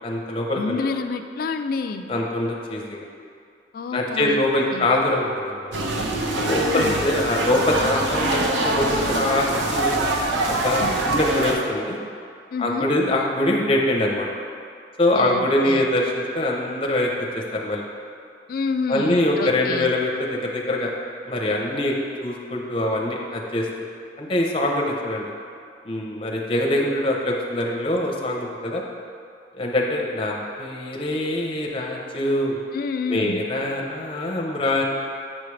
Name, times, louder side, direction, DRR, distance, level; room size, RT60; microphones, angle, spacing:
voice 1, 0.0-0.9 2.1-3.0 3.9-5.7 6.3-10.0 10.6-12.0 12.6-14.3 15.0-17.9 18.9-20.9 21.3-22.0 22.2-23.7 24.2-25.3 25.8-28.8 29.6-32.6 33.1-34.8, left 1 dB, 30° left, -1 dB, 0.7 m, -23 dB
voice 2, 0.6-2.0 3.7-4.4 4.7-4.8 6.4-7.0 12.5-12.9 15.1-15.9 18.5-19.9 32.7-33.4, left 4 dB, 55° left, 8 dB, 0.3 m, -28 dB
sound 1, 5.7-11.6, right 2 dB, 90° right, 0.6 m, -24 dB
7.5 x 4.9 x 3.2 m, 2.3 s
head